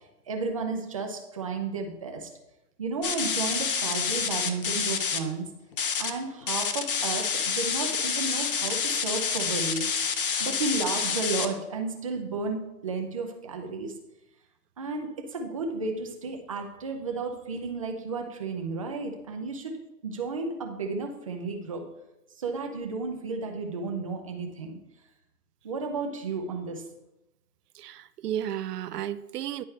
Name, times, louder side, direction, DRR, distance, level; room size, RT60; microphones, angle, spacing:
voice 1, 0.3-2.3 2.8-5.5 6.0-13.9 14.8-19.8 20.0-21.9 22.4-24.8 25.6-26.8, right 4 dB, 25° right, 3 dB, 0.4 m, -33 dB
sound 1, 3.0-5.2 5.7-6.1 6.4-11.5, left 6 dB, 40° left, 0.4 m, -28 dB
voice 2, 27.8-29.6, right 10 dB, 75° right, 14 dB, 0.6 m, -33 dB
9.8 x 4.3 x 3.2 m, 0.92 s
hypercardioid pair, 145°, 47 cm